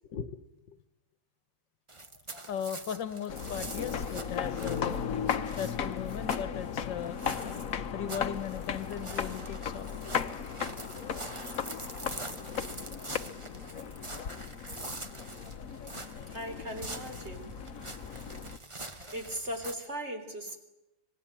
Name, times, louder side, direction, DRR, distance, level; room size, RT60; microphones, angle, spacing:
voice 1, 0.1-0.4 0.7-0.8 2.3-7.2 7.9-9.9 11.3-12.4 12.7-13.1 14.8-14.9 15.4-15.8 16.1-16.2 19.0-19.2, left 9 dB, 90° left, 14 dB, 1.8 m, -39 dB
sound 1, 1.9-19.7, right 2 dB, 20° right, 1.2 m, -45 dB
sound 2, 3.3-18.6, left 7 dB, 55° left, 1.3 m, -36 dB
voice 2, 16.3-17.5 19.1-20.6, equal, 35° right, 5 dB, 3.8 m, -38 dB
26.0 x 20.0 x 8.9 m, 0.96 s
omnidirectional pair, 1.9 m